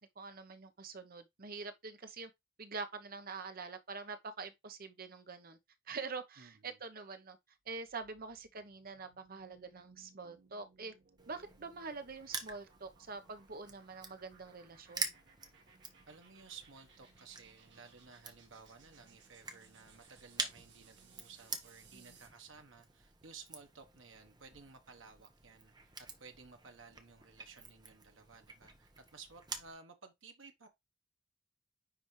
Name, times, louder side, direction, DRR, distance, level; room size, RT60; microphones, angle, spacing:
voice 1, 0.2-2.3 2.6-5.6 5.9-7.4 7.7-10.9 11.3-15.2 21.9-22.2, right 4 dB, 50° right, 1.0 m, -45 dB
voice 2, 6.4-6.8 16.1-30.7, right 5 dB, 85° right, 1.2 m, -56 dB
sound 1, 7.7-22.4, right 5 dB, 65° right, 2.3 m, -65 dB
Crushing, 11.2-29.7, right 4 dB, 20° right, 1.2 m, -47 dB
9.9 x 3.5 x 3.2 m
head